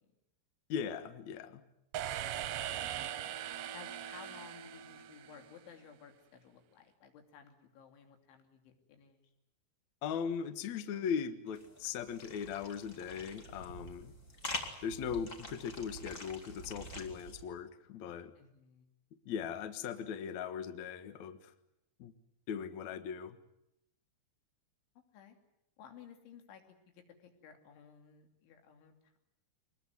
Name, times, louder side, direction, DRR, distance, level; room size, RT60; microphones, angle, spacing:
voice 1, 0.7-1.6 10.0-14.1 14.8-18.3 19.2-21.5 22.0-22.1 22.5-23.4, left 7 dB, 65° left, 11 dB, 1.8 m, -39 dB
sound 1, 1.9-5.8, right 11 dB, 70° right, 2.6 m, -40 dB
voice 2, 2.5-2.9 3.2-3.4 3.7-9.2 18.4-18.9 25.1-25.4 25.8-29.2, left 7 dB, 85° left, 5 dB, 5.2 m, -56 dB
sound 2, 11.5-17.4, left 1 dB, 25° left, 1.8 m, -46 dB
24.5 x 20.5 x 9.3 m, 0.83 s
omnidirectional pair, 5.3 m